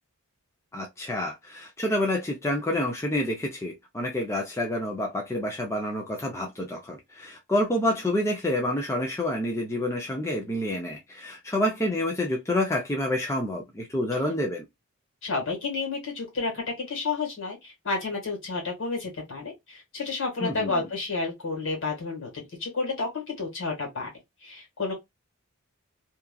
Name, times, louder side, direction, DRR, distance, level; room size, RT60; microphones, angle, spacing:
voice 1, 0.7-14.6 20.4-20.8, left 1 dB, 15° left, 0.5 m, -28 dB
voice 2, 15.2-24.1 24.4-24.9, left 3 dB, 60° left, 1.7 m, -31 dB
2.8 x 2.4 x 2.3 m
head